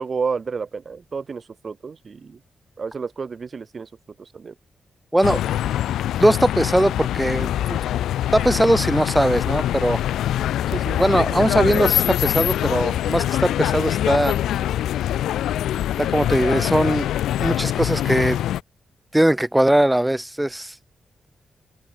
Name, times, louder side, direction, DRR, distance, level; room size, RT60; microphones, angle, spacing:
voice 1, 0.0-2.4 2.8-3.9 4.2-4.5 10.7-11.8, right 5 dB, 55° right, 2.8 m, -31 dB
sound 1, 5.2-18.6, left 12 dB, 85° left, 1.1 m, -24 dB
voice 2, 6.2-7.8 8.3-10.0 11.0-14.4 16.0-17.1 17.4-18.4 19.1-20.7, right 1 dB, 10° right, 0.7 m, -20 dB
supercardioid pair, 45°, 0 cm